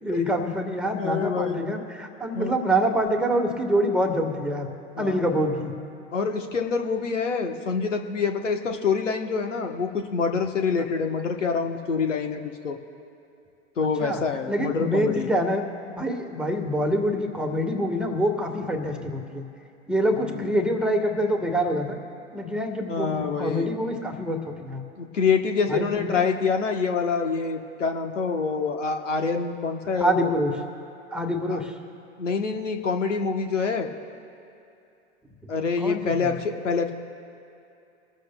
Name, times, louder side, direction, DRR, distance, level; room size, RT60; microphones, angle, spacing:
voice 1, 0.0-4.7 5.0-5.7 14.0-14.2 14.5-15.6 16.0-19.4 19.9-22.0 22.3-24.8 25.7-26.2 30.0-30.5 31.1-31.7 35.8-36.3, equal, 5° right, 2 dB, 1.4 m, -25 dB
voice 2, 1.0-1.6 2.3-2.5 5.0-5.2 6.1-12.8 13.8-15.3 20.1-20.6 22.9-23.7 25.0-30.3 31.5-31.6 32.2-33.9 35.5-36.9, left 5 dB, 90° left, 5 dB, 1.1 m, -26 dB
27.0 x 13.0 x 2.2 m, 2.6 s
hypercardioid pair, 100°, 36 cm